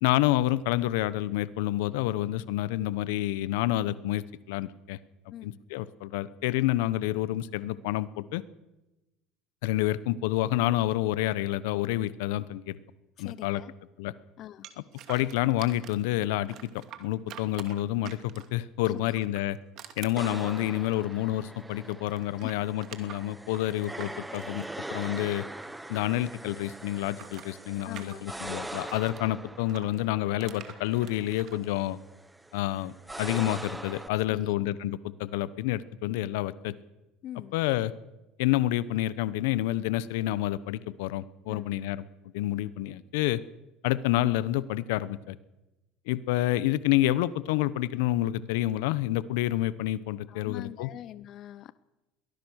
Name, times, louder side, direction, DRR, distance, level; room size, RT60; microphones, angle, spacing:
voice 1, 0.0-5.0 5.4-8.4 9.6-12.8 13.2-13.6 14.0-14.1 15.1-19.6 20.0-25.4 25.9-32.0 32.5-36.7 37.5-37.9 38.4-42.0 42.3-43.4 43.8-45.3 46.1-50.9, left 15 dB, 80° left, 17 dB, 1.0 m, -28 dB
voice 2, 13.2-13.7 14.4-14.7 18.9-19.0 22.4-22.5 27.8-28.3 34.3-34.6 37.2-37.5 41.5-41.7 50.3-51.7, left 12 dB, 55° left, 16 dB, 0.7 m, -42 dB
sound 1, 14.6-16.1 16.5-18.6 19.1-21.6 21.9-26.0 26.3-29.2 29.7-31.6, right 11 dB, 60° right, 2.5 m, -47 dB
sound 2, 20.2-34.1, right 1 dB, 10° right, 1.0 m, -42 dB
22.5 x 18.5 x 6.5 m, 0.99 s
supercardioid pair, 95°, 0 cm